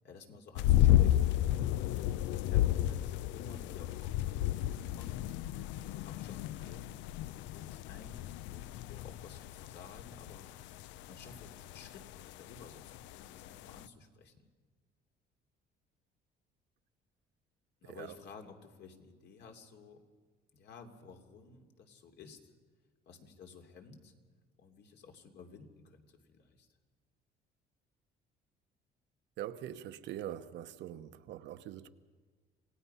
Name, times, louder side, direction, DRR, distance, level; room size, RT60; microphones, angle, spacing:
voice 1, 0.0-1.4 2.2-5.4 5.8-6.9 7.4-10.5 11.0-14.5 17.8-20.0 20.5-22.5 23.1-24.1 24.6-26.7, left 5 dB, 65° left, 3.0 m, -54 dB
sound 1, 0.5-13.9, left 13 dB, 85° left, 0.5 m, -32 dB
voice 2, 17.8-18.2 29.4-31.9, right 11 dB, 75° right, 1.0 m, -43 dB
27.0 x 17.5 x 5.7 m
cardioid pair, 100°, 19 cm